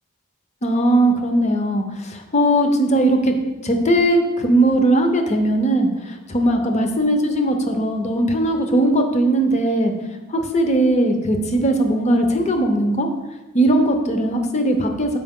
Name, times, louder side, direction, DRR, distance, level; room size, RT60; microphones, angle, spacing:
voice 1, 0.6-3.3 3.6-9.9 10.3-13.1 13.5-15.2, right 1 dB, 35° left, 5 dB, 0.7 m, -19 dB
6.1 x 5.0 x 3.6 m, 1.1 s
head